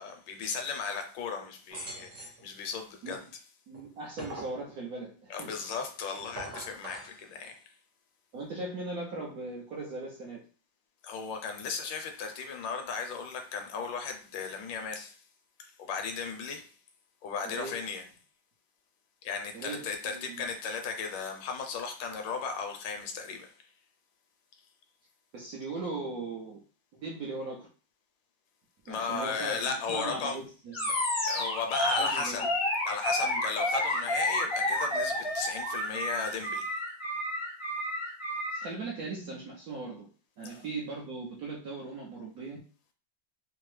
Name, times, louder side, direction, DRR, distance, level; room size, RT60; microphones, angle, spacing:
voice 1, 0.0-3.2 5.3-7.6 11.0-15.2 15.6-16.7 17.2-18.0 19.2-23.5 28.9-30.4 31.3-32.4 32.9-36.7 40.4-40.6, left 5 dB, 75° left, 1.3 m, -36 dB
sound 1, 1.7-2.4 3.7-4.6 6.2-7.1, right 1 dB, 40° right, 0.9 m, -42 dB
voice 2, 3.7-5.5 8.3-10.5 17.4-17.8 19.5-20.5 25.3-26.6 26.9-27.7 28.9-30.9 32.0-32.5 33.2-33.4 38.5-40.1 40.4-42.6, right 3 dB, 70° right, 0.9 m, -39 dB
Animal, 30.7-38.7, left 1 dB, 30° left, 0.5 m, -30 dB
3.4 x 2.0 x 3.1 m
omnidirectional pair, 2.1 m